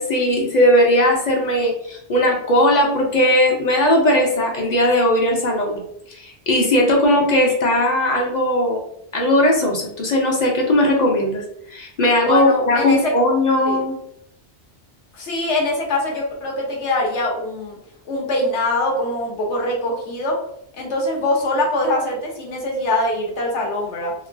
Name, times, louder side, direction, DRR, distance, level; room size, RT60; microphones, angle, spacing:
voice 1, 0.0-5.8 6.1-8.8 9.1-13.9, left 1 dB, 50° left, 0 dB, 0.5 m, -18 dB
voice 2, 12.2-13.1 13.6-13.8 15.1-17.8 18.0-20.4 20.8-24.1, left 1 dB, 85° left, -1 dB, 1.1 m, -23 dB
3.1 x 2.2 x 2.5 m, 0.75 s
omnidirectional pair, 1.1 m